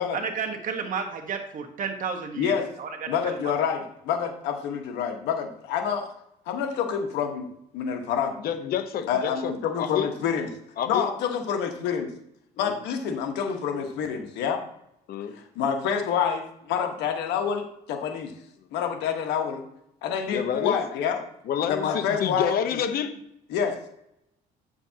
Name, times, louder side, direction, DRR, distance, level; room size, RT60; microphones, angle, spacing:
voice 1, 0.1-3.5, right 6 dB, 50° right, 4 dB, 1.3 m, -32 dB
voice 2, 2.4-2.7 3.1-6.1 6.5-7.5 7.7-8.3 9.1-10.5 10.9-12.1 12.6-14.6 15.4-18.3 18.7-19.6 20.0-21.2 21.7-22.5 23.5-23.9, left 7 dB, 90° left, 4 dB, 1.3 m, -27 dB
voice 3, 8.4-10.1 10.8-11.1 12.6-12.7 15.1-15.3 20.3-20.8 21.5-23.1, left 8 dB, 60° left, 8 dB, 0.9 m, -28 dB
8.8 x 7.0 x 2.9 m, 0.77 s
cardioid pair, 110°, 17 cm